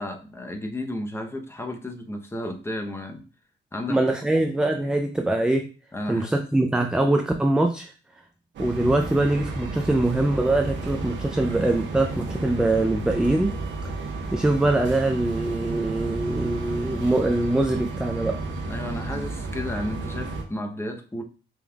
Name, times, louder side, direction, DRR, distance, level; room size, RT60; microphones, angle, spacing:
voice 1, 0.0-3.2 3.7-4.0 5.9-6.4 18.7-21.2, left 1 dB, 10° left, 4 dB, 0.8 m, -33 dB
voice 2, 3.9-5.7 6.1-7.9 8.6-13.5 14.3-18.4, right 2 dB, 5° right, 4 dB, 0.4 m, -23 dB
sound 1, 8.5-20.4, right 3 dB, 70° right, 1.1 m, -32 dB
5.3 x 3.4 x 2.3 m, 0.36 s
cardioid pair, 90°, 20 cm